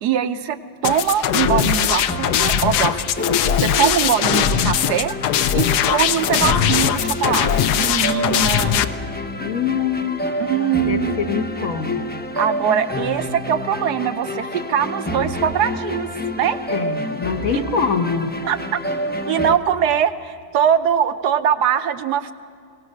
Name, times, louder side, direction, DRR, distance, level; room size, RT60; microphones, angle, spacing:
voice 1, 0.0-0.6 0.8-3.0 3.5-5.1 5.5-8.9 10.4-11.5 12.4-16.1 16.3-16.6 17.5-17.6 18.5-18.8 19.3-22.3, right 9 dB, 75° right, 10 dB, 1.3 m, -22 dB
sound 1, 0.8-8.9, left 10 dB, 75° left, 1.2 m, -20 dB
sound 2, 1.4-19.6, left 1 dB, 15° left, 0.3 m, -28 dB
voice 2, 9.4-10.3 10.9-12.1 16.7-18.3, left 6 dB, 55° left, 7 dB, 1.4 m, -24 dB
23.0 x 18.0 x 6.5 m, 2.4 s
omnidirectional pair, 1.8 m